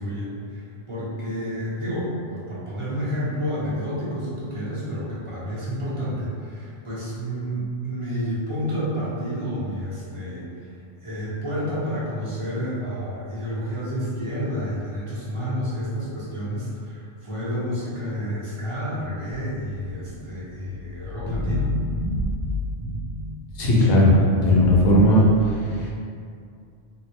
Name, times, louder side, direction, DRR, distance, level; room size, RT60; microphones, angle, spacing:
voice 1, 0.0-21.7, equal, 30° right, -9 dB, 0.8 m, -30 dB
sound 1, 19.3-23.6 24.1-25.0, left 1 dB, 5° left, 0.5 m, -29 dB
voice 2, 23.5-25.9, equal, 85° left, -5 dB, 1.1 m, -17 dB
3.6 x 2.2 x 2.9 m, 2.3 s
omnidirectional pair, 1.3 m